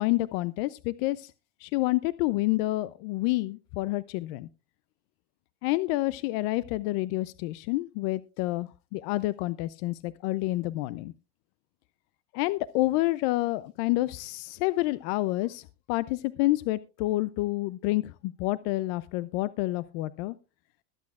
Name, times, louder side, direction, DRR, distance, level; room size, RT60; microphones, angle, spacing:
voice 1, 0.0-1.3 1.6-4.5 5.6-11.1 12.3-20.3, left 18 dB, 60° left, 17 dB, 0.5 m, -28 dB
22.0 x 8.5 x 2.4 m, 0.30 s
supercardioid pair, 145°, 35 cm